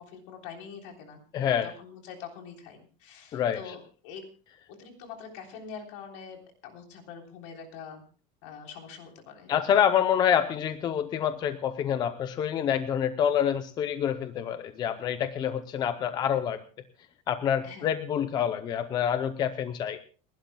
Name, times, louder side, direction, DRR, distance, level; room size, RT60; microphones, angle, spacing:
voice 1, 0.0-1.2 1.6-4.2 4.7-8.0 8.4-9.5 17.6-17.9, left 6 dB, 60° left, 3 dB, 3.5 m, -44 dB
voice 2, 1.3-1.7 3.3-3.7 9.5-16.6 17.3-20.0, left 9 dB, 25° left, 11 dB, 0.6 m, -27 dB
30.0 x 12.0 x 2.2 m, 0.37 s
cardioid pair, 175°, 17 cm